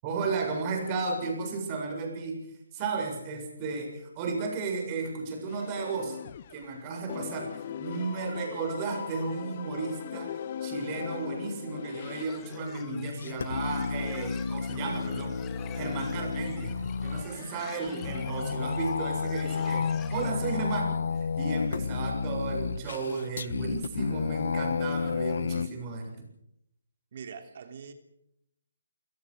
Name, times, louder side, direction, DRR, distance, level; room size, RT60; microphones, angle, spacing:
voice 1, 0.0-2.5 2.7-6.2 6.5-15.4 15.7-16.7 17.0-26.3, right 4 dB, 25° right, 3 dB, 7.2 m, -34 dB
sound 1, 5.5-6.8 7.1-12.2, left 9 dB, 40° left, 0.9 m, -39 dB
sound 2, 12.2-20.7, left 8 dB, 15° left, 2.0 m, -47 dB
sound 3, 12.4-25.7, left 5 dB, 65° left, 1.5 m, -31 dB
voice 2, 27.1-27.9, right 6 dB, 50° right, 6 dB, 3.3 m, -43 dB
29.5 x 17.0 x 6.6 m, 0.80 s
hypercardioid pair, 155°, 0 cm